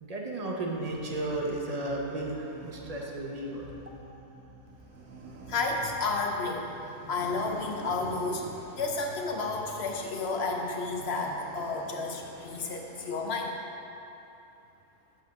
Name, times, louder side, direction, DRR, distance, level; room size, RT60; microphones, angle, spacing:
voice 1, 0.0-3.7, right 2 dB, 40° right, -1 dB, 0.5 m, -34 dB
sound 1, 0.7-13.4, right 3 dB, 70° right, 1.2 m, -48 dB
voice 2, 5.5-6.7 7.1-13.6, left 3 dB, 60° left, 2 dB, 0.7 m, -31 dB
8.2 x 4.2 x 6.1 m, 2.9 s
omnidirectional pair, 1.7 m